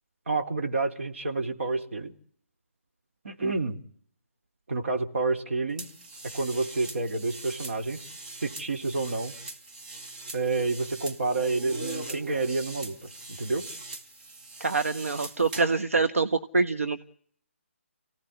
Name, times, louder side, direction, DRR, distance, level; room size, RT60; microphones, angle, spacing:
voice 1, 0.3-2.1 3.2-3.8 4.7-5.9 6.2-8.1 8.4-9.3 10.3-13.7, right 3 dB, 60° right, 4 dB, 3.7 m, -29 dB
sound 1, 5.8-15.8, right 2 dB, 40° right, 4.2 m, -42 dB
voice 2, 14.6-17.0, right 4 dB, 75° right, 8 dB, 1.5 m, -25 dB
28.5 x 17.5 x 9.7 m, 0.63 s
figure-of-eight pair, 150°, 7 cm